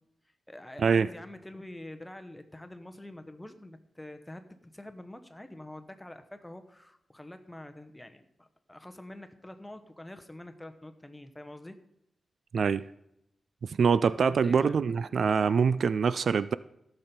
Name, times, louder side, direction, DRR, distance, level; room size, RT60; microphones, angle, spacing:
voice 1, 0.5-11.8 14.3-14.8, left 1 dB, 10° left, 1.1 m, -46 dB
voice 2, 12.5-12.8 13.6-16.5, right 6 dB, 70° right, 0.3 m, -24 dB
15.0 x 6.9 x 4.4 m
cardioid pair, 85°, 0 cm